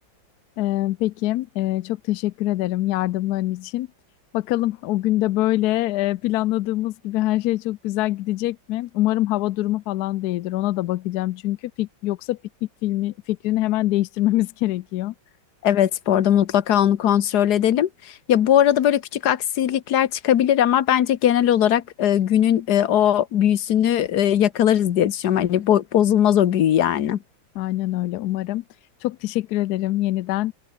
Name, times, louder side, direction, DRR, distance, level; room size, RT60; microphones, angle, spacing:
voice 1, 0.6-3.9 4.3-12.4 12.8-15.1 27.6-28.6 29.0-30.5, left 16 dB, 75° left, 0.9 m, -24 dB
voice 2, 15.6-27.2, left 10 dB, 60° left, 1.4 m, -19 dB
open air
omnidirectional pair, 2.2 m